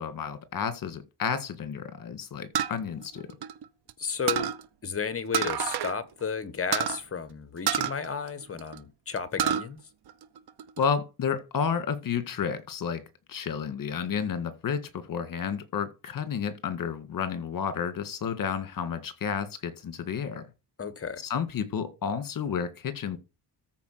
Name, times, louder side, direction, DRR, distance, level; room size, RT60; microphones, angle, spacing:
voice 1, 0.0-3.3 10.8-13.0 13.3-20.5 21.2-23.2, left 7 dB, 50° left, 1.9 m, -31 dB
sound 1, 2.5-3.9 4.3-4.6 5.3-6.0 6.2-6.3 6.7-7.0 7.7-8.8 9.2-9.7 10.1-10.8, right 9 dB, 65° right, 1.0 m, -28 dB
voice 2, 4.0-4.5 4.8-9.8 20.8-21.2, left 6 dB, 35° left, 1.3 m, -33 dB
14.0 x 4.7 x 6.6 m
wide cardioid pair, 145°, 42 cm